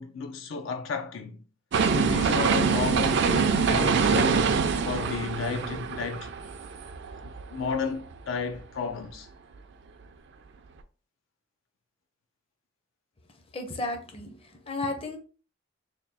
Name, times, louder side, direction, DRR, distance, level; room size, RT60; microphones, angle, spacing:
voice 1, 0.0-1.4 1.8-6.3 7.2-9.3, left 5 dB, 75° left, 0.5 m, -33 dB
sound 1, 1.7-7.7 8.1-8.2, right 5 dB, 60° right, 0.4 m, -25 dB
voice 2, 13.5-15.2, left 2 dB, 30° left, 0.6 m, -33 dB
3.4 x 2.3 x 4.0 m
head